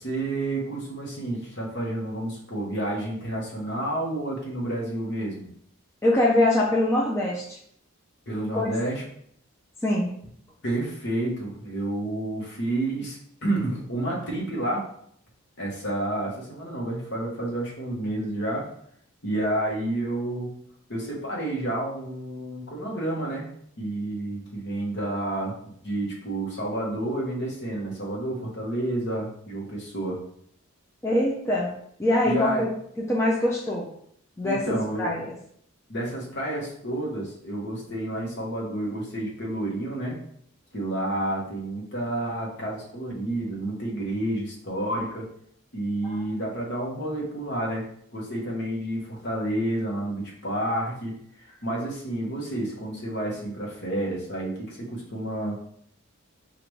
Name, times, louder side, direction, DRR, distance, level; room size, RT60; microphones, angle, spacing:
voice 1, 0.0-5.5 8.3-9.0 10.6-14.8 15.6-18.6 19.2-20.5 20.9-23.5 23.8-25.5 25.8-30.2 32.2-32.7 34.4-35.1 35.9-40.2 40.7-45.2 45.7-47.8 48.1-55.6, right 1 dB, 50° left, -2 dB, 1.1 m, -30 dB
voice 2, 6.0-7.6 8.5-8.7 9.8-10.1 31.0-31.7 32.0-32.7 33.1-33.9 34.4-34.6 35.0-35.3 46.0-46.2, left 1 dB, 10° left, -4 dB, 0.4 m, -23 dB
4.9 x 2.5 x 3.1 m, 0.66 s
head